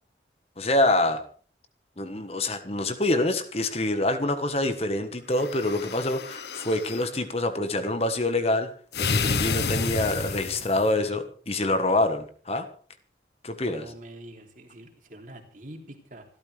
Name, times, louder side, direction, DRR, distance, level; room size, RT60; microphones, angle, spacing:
voice 1, 0.6-1.2 2.0-8.7 9.0-12.7 13.4-13.8, left 2 dB, 35° left, 9 dB, 1.3 m, -26 dB
sound 1, 5.3-7.1 8.9-10.9, left 4 dB, 65° left, 1.0 m, -29 dB
voice 2, 13.5-16.2, right 1 dB, 45° right, 3 dB, 3.0 m, -45 dB
26.0 x 12.5 x 3.4 m, 0.43 s
head